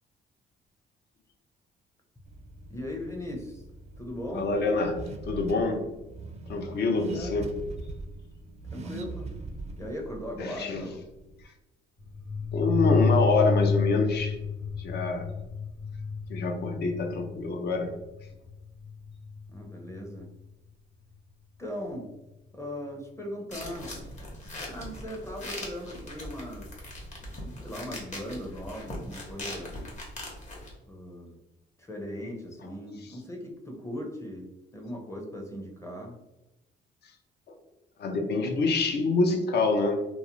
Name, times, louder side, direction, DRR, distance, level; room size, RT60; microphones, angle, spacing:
Car / Accelerating revving vroom, 2.2-11.4, right 3 dB, 35° right, 0.3 m, -42 dB
voice 1, 2.7-3.6 4.0-4.5 6.9-7.4 8.7-9.3 9.8-11.0 19.5-20.3 21.6-22.1 22.5-23.9 24.7-26.7 27.3-29.8 30.9-31.4 31.8-36.2, left 1 dB, 15° left, 0 dB, 0.6 m, -38 dB
voice 2, 4.3-5.9 6.5-7.5 10.4-10.9 12.5-14.3 14.8-15.3 16.3-17.9 37.5-37.6 38.0-40.1, left 3 dB, 55° left, 4 dB, 0.5 m, -26 dB
sound 1, 12.0-20.4, left 4 dB, 80° left, 1.0 m, -30 dB
sound 2, 23.5-30.7, left 1 dB, 35° left, 0.9 m, -40 dB
2.4 x 2.0 x 2.9 m, 0.98 s
cardioid pair, 90°, 20 cm